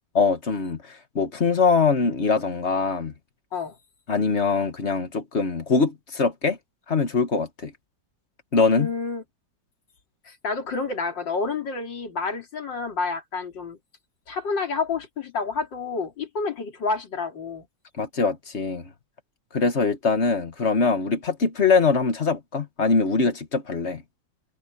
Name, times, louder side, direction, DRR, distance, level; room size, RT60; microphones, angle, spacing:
voice 1, 0.1-3.1 4.1-6.6 6.9-7.7 8.5-8.9 18.0-18.8 19.5-24.0, left 4 dB, 40° left, 1.6 m, -23 dB
voice 2, 8.7-9.2 10.3-13.8 14.3-17.7, left 4 dB, 85° left, 3.7 m, -29 dB
omnidirectional pair, 1.9 m